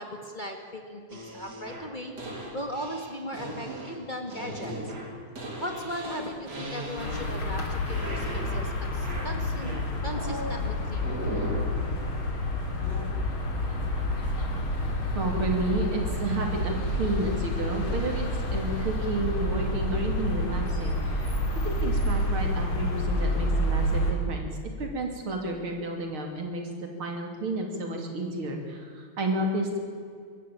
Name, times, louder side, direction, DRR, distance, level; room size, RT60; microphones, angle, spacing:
voice 1, 0.0-4.9 5.6-9.8 10.0-11.1, equal, 25° left, 3 dB, 1.8 m, -38 dB
sound 1, 1.1-7.6 7.9-8.7 9.0-10.6 11.0-11.7 12.8-13.0, equal, 50° right, 3.8 m, -37 dB
sound 2, 7.0-24.1, left 1 dB, 75° left, 3.8 m, -29 dB
voice 2, 15.2-24.5 24.8-29.8, right 2 dB, 75° right, 2 dB, 3.7 m, -31 dB
24.5 x 13.5 x 8.8 m, 2.2 s
omnidirectional pair, 2.3 m